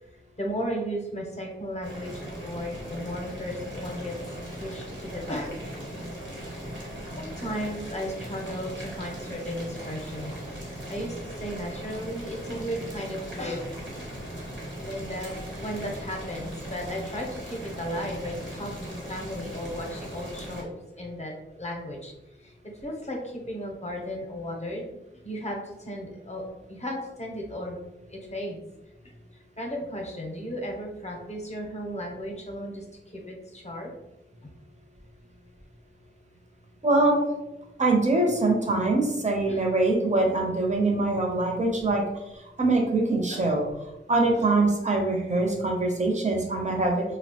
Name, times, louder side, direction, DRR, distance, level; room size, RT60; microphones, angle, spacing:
voice 1, 0.4-4.2 4.5-5.6 7.2-10.4 10.6-13.7 14.8-22.1 22.4-24.8 25.2-27.8 28.1-28.6 29.0-29.1 29.6-32.8 33.1-33.9 34.4-34.5 39.5-39.6 43.3-43.4 44.3-44.4, equal, 35° left, 0 dB, 0.6 m, -35 dB
Boiling, 1.8-20.6, equal, 70° right, 1.1 m, -38 dB
voice 2, 36.8-37.2 37.8-42.0 42.3-43.6 44.1-47.0, right 2 dB, 35° right, 0 dB, 0.6 m, -23 dB
2.7 x 2.0 x 2.8 m, 0.95 s
wide cardioid pair, 60°, 20 cm